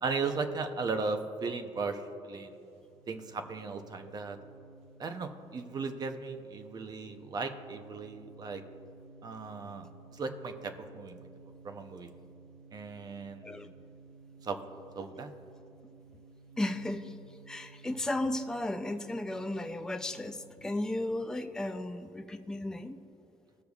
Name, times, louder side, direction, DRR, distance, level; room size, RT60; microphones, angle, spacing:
voice 1, 0.0-2.6 3.1-4.4 5.0-8.6 9.2-9.9 10.1-11.2 11.6-12.1 12.7-13.7 14.4-14.6 14.9-15.3, right 4 dB, 40° right, 7 dB, 0.7 m, -36 dB
sound 1, 2.5-20.8, right 3 dB, 85° right, 0.6 m, -55 dB
voice 2, 16.6-17.1 17.5-23.0, left 1 dB, 5° left, 7 dB, 0.4 m, -34 dB
17.5 x 6.6 x 2.4 m, 2.7 s
cardioid pair, 125°, 11 cm